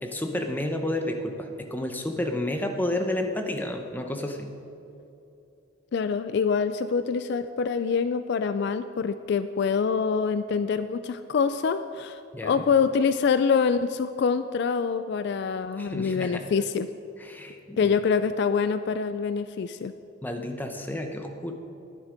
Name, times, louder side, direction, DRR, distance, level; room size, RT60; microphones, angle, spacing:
voice 1, 0.0-4.5 12.3-12.6 15.8-16.4 17.2-17.9 20.2-21.5, left 1 dB, 10° left, 4 dB, 0.8 m, -31 dB
voice 2, 5.9-16.9 17.8-19.9, left 5 dB, 55° left, 11 dB, 0.3 m, -25 dB
11.0 x 10.0 x 5.1 m, 2.8 s
head